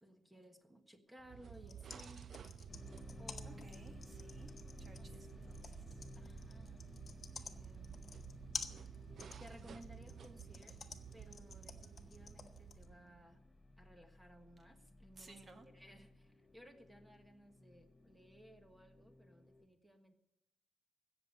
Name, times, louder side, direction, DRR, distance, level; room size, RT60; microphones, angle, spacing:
voice 1, 0.0-2.3 3.2-3.9 4.9-5.8 6.1-6.8 7.3-8.1 9.4-10.8 11.1-13.4 13.8-15.4 15.6-20.2, equal, 5° right, 6 dB, 1.4 m, -60 dB
sound 1, 1.2-13.4, right 8 dB, 60° right, 0.4 m, -53 dB
sound 2, 1.5-12.9, left 5 dB, 45° left, 1.3 m, -50 dB
sound 3, 2.7-19.6, left 2 dB, 20° left, 1.1 m, -57 dB
voice 2, 3.4-6.0 15.2-15.7, right 2 dB, 35° right, 6 dB, 1.8 m, -60 dB
16.0 x 7.0 x 9.2 m, 0.91 s
cardioid pair, 100°, 0 cm